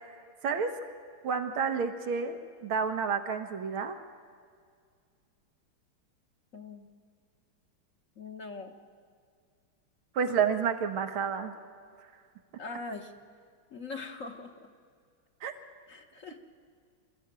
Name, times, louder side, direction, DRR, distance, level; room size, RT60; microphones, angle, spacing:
voice 1, 0.4-0.8 1.2-4.0 10.1-11.5 15.4-15.5, right 6 dB, 85° right, 7 dB, 2.2 m, -30 dB
voice 2, 6.5-6.9 8.2-8.7 12.6-13.1 13.7-14.7 15.9-16.4, left 3 dB, 45° left, 4 dB, 1.3 m, -41 dB
25.0 x 14.5 x 8.9 m, 2.1 s
omnidirectional pair, 2.2 m